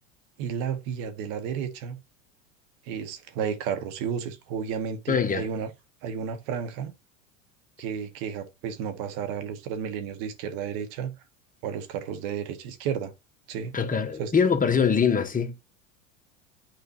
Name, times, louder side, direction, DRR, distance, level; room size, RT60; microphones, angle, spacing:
voice 1, 0.4-2.0 2.8-5.7 6.0-6.9 7.8-11.1 11.6-13.1 13.5-13.7 14.2-14.3, right 7 dB, 55° right, 1.5 m, -32 dB
voice 2, 5.1-5.5 13.7-15.6, left 6 dB, 20° left, 1.2 m, -23 dB
9.2 x 4.9 x 2.7 m
hypercardioid pair, 85°, 39 cm